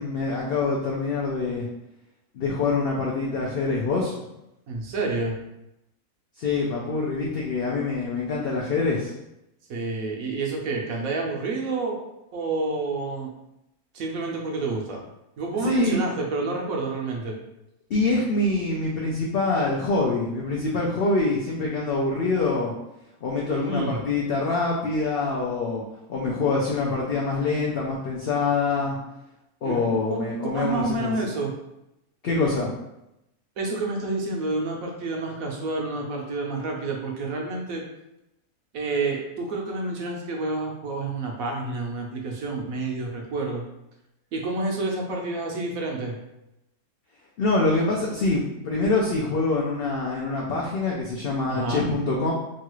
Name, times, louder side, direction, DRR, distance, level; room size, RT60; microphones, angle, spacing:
voice 1, 0.0-1.7 2.3-4.1 6.4-9.1 15.6-16.0 17.9-22.7 23.2-25.8 26.1-29.0 29.6-31.1 32.2-32.7 47.4-52.3, left 3 dB, 80° left, -3 dB, 0.5 m, -25 dB
voice 2, 4.7-5.4 9.7-12.0 12.3-13.3 13.9-15.0 15.4-17.3 23.5-24.0 29.6-29.8 30.1-30.2 30.5-31.5 33.6-37.8 38.7-43.6 44.3-46.2 51.5-51.9, right 3 dB, 70° right, 0 dB, 1.0 m, -29 dB
3.0 x 2.4 x 3.0 m, 0.87 s
omnidirectional pair, 1.6 m